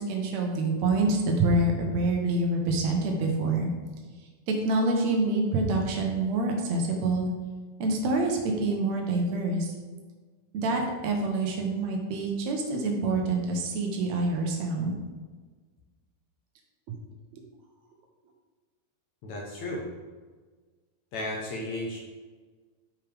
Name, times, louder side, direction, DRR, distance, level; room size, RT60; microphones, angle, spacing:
voice 1, 0.0-3.7 4.5-7.3 7.8-9.7 10.5-15.0 16.9-17.0, right 2 dB, 80° right, 1 dB, 1.5 m, -26 dB
voice 2, 19.2-19.8 21.1-22.0, left 1 dB, 75° left, -1 dB, 1.7 m, -34 dB
12.5 x 5.0 x 3.5 m, 1.4 s
omnidirectional pair, 4.7 m